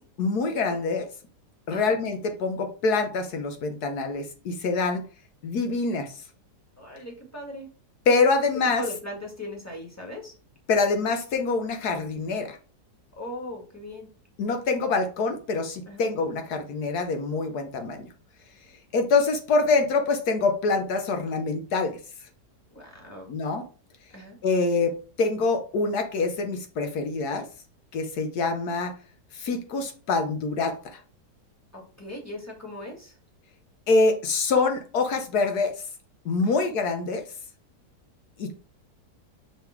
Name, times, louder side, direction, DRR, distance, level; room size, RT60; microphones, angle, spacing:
voice 1, 0.2-1.1 1.7-5.0 5.4-6.1 8.1-8.8 10.7-12.6 14.4-18.1 18.9-22.0 23.3-23.6 24.4-27.4 27.9-28.9 29.3-31.0 33.9-35.7 36.2-37.2 38.4-38.5, left 3 dB, 70° left, 6 dB, 1.3 m, -25 dB
voice 2, 6.8-7.7 8.5-10.3 13.2-14.1 15.9-16.0 22.7-23.3 24.1-24.4 31.7-33.2 36.4-36.7, left 1 dB, 10° left, 0 dB, 1.8 m, -38 dB
5.9 x 3.9 x 4.4 m, 0.37 s
omnidirectional pair, 1.8 m